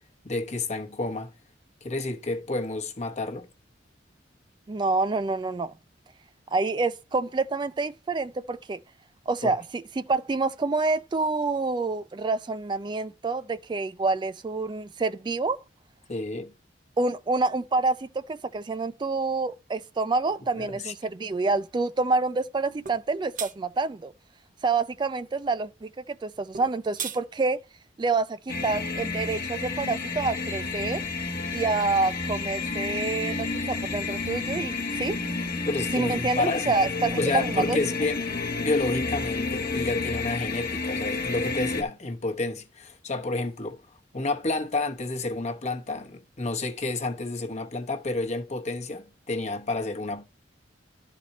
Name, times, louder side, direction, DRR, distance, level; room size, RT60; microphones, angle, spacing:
voice 1, 0.2-1.3 1.8-3.5 9.4-9.5 16.1-16.5 20.5-20.9 35.7-36.8 37.2-38.2 38.5-50.2, left 2 dB, 40° left, 1.0 m, -30 dB
voice 2, 4.7-5.7 6.5-8.8 9.3-15.6 17.0-24.1 24.6-27.6 28.0-31.0 31.5-35.2 35.9-37.8, right 3 dB, 25° right, 0.3 m, -27 dB
sound 1, 22.9-23.0 23.4-23.5 26.5-27.2, right 8 dB, 45° right, 0.7 m, -34 dB
sound 2, 28.5-41.8, left 3 dB, 55° left, 1.3 m, -30 dB
12.0 x 4.2 x 4.2 m
head